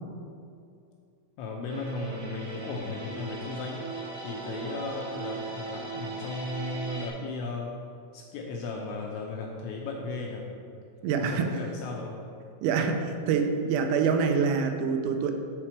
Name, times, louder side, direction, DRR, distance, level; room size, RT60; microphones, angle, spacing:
voice 1, 1.4-3.8 4.2-7.7 8.1-10.4 11.2-12.1, left 3 dB, 80° left, -1 dB, 2.7 m, -35 dB
sound 1, 1.7-7.1, right 3 dB, 45° right, 1.7 m, -38 dB
voice 2, 11.0-11.6 12.6-15.3, right 5 dB, 90° right, 5 dB, 3.4 m, -26 dB
8.5 x 6.6 x 4.4 m, 2.4 s
omnidirectional pair, 5.9 m